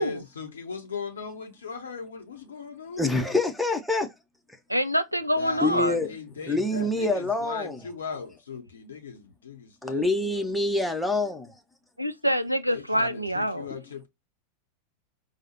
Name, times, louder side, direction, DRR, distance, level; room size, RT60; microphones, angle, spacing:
voice 1, 0.0-3.4 5.4-10.5 12.7-14.1, left 5 dB, 70° left, 0.5 m, -38 dB
voice 2, 3.0-4.1 5.6-6.1 6.5-7.8 9.8-11.5, left 2 dB, 5° left, 0.6 m, -26 dB
voice 3, 4.7-6.0 12.0-13.7, equal, 90° right, 0.4 m, -26 dB
4.7 x 2.0 x 2.9 m
figure-of-eight pair, 90°, 0 cm